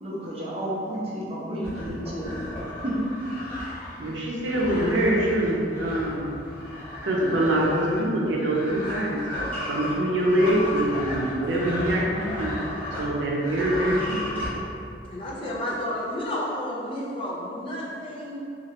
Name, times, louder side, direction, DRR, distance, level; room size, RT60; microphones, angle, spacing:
voice 1, 0.0-2.4 2.8-3.0 15.4-15.5, right 1 dB, 35° right, -7 dB, 0.7 m, -32 dB
sound 1, 1.6-13.1 13.4-14.5, left 1 dB, 10° left, 0.8 m, -34 dB
voice 2, 4.0-6.3 7.0-9.2 9.7-12.5 13.0-14.2, right 1 dB, 85° right, -3 dB, 0.5 m, -24 dB
voice 3, 15.1-18.4, left 1 dB, 30° left, -5 dB, 0.5 m, -31 dB
2.9 x 2.4 x 3.0 m, 2.6 s
head